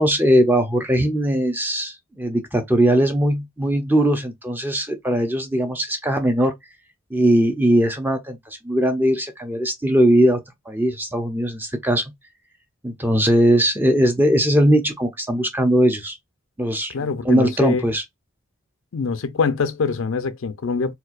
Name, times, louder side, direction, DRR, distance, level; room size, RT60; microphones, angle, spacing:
voice 1, 0.0-6.5 7.1-10.4 10.7-12.0 12.8-16.2 16.6-18.0, right 1 dB, 10° right, 0.6 m, -19 dB
voice 2, 16.9-17.9 18.9-20.9, left 4 dB, 70° left, 0.5 m, -24 dB
4.3 x 2.2 x 2.4 m
head